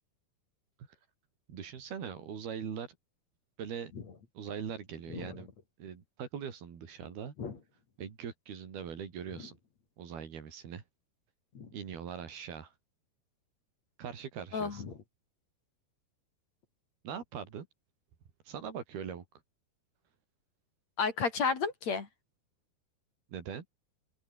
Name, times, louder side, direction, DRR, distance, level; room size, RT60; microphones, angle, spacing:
voice 1, 1.5-2.9 3.6-3.9 4.4-5.5 5.8-7.4 8.0-9.6 10.0-10.8 11.7-12.7 14.0-14.8 17.0-17.7 18.5-19.3 23.3-23.7, right 7 dB, 80° right, 5.3 m, -41 dB
voice 2, 14.5-14.9 21.0-22.1, left 5 dB, 45° left, 4.1 m, -32 dB
open air
omnidirectional pair, 4.4 m